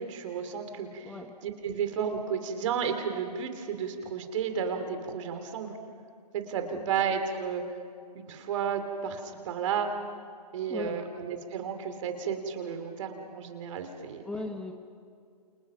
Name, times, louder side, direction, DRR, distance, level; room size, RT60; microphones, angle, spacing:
voice 1, 0.0-5.7 6.3-7.6 8.1-9.9 10.5-14.2, right 7 dB, 50° right, 6 dB, 3.3 m, -32 dB
voice 2, 14.2-14.7, left 2 dB, 5° left, 3 dB, 1.2 m, -37 dB
29.0 x 28.5 x 5.9 m, 2.3 s
hypercardioid pair, 140°, 21 cm